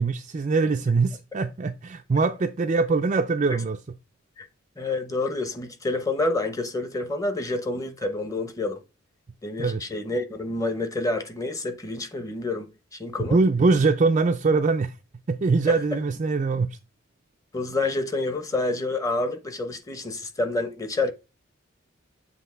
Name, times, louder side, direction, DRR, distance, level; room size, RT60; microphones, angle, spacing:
voice 1, 0.0-3.8 9.6-9.8 13.3-15.0 15.3-16.8, right 4 dB, 35° right, 0.4 m, -23 dB
voice 2, 4.8-8.8 9.4-13.4 17.5-21.1, left 2 dB, 15° left, 0.9 m, -28 dB
7.7 x 3.0 x 4.4 m
head